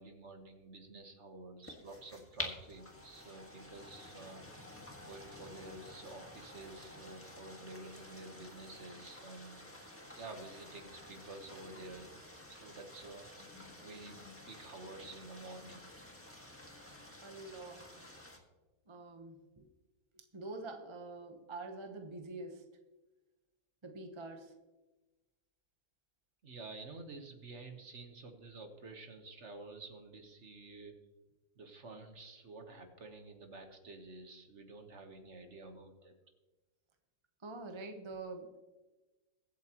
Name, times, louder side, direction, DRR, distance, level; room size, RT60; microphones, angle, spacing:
voice 1, 0.0-4.7 5.0-9.6 10.2-12.1 12.5-13.5 13.8-14.2 14.5-15.8 26.4-31.0 31.6-36.1, right 2 dB, 45° right, 5 dB, 1.3 m, -50 dB
sound 1, 1.6-18.4, left 1 dB, 10° left, 1.4 m, -50 dB
voice 2, 17.2-17.9 18.9-19.7 20.1-22.6 23.8-24.5 37.4-38.6, right 2 dB, 25° right, 5 dB, 0.8 m, -46 dB
22.0 x 8.3 x 3.0 m, 1.1 s
omnidirectional pair, 1.9 m